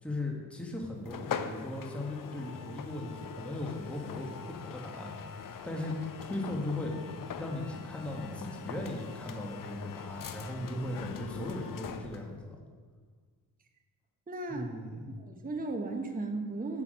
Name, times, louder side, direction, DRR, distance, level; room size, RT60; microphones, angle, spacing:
voice 1, 0.0-5.1 5.6-6.0 6.2-7.0 7.4-12.6 14.5-15.0, left 1 dB, 5° left, -1 dB, 1.6 m, -38 dB
sound 1, 1.0-12.3, left 6 dB, 50° left, 0.7 m, -42 dB
voice 2, 14.3-14.8 15.2-16.8, right 2 dB, 20° right, 3 dB, 0.9 m, -35 dB
8.4 x 6.2 x 5.0 m, 1.6 s
cardioid pair, 70°, 44 cm